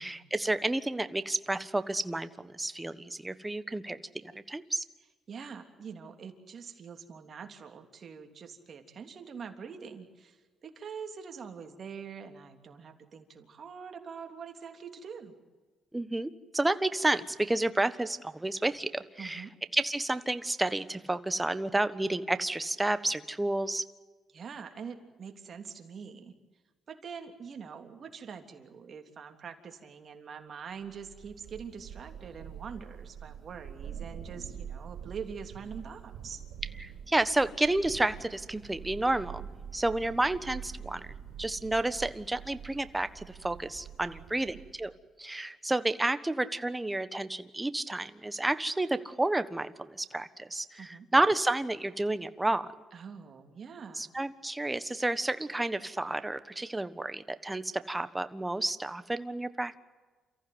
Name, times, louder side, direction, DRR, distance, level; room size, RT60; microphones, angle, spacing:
voice 1, 0.0-4.0 4.5-4.8 15.9-19.4 19.7-23.8 36.8-39.5 39.7-41.1 41.4-44.9 45.2-52.7 54.0-59.8, right 2 dB, 15° right, 12 dB, 1.3 m, -30 dB
voice 2, 5.0-15.4 19.2-19.5 24.3-26.3 26.9-36.4 44.1-44.6 50.8-51.1 52.9-54.1, right 6 dB, 50° right, 5 dB, 3.1 m, -44 dB
Thunder / Rain, 30.9-45.0, right 8 dB, 80° right, 5.5 m, -45 dB
29.0 x 15.0 x 9.6 m, 1.3 s
cardioid pair, 90°, 0 cm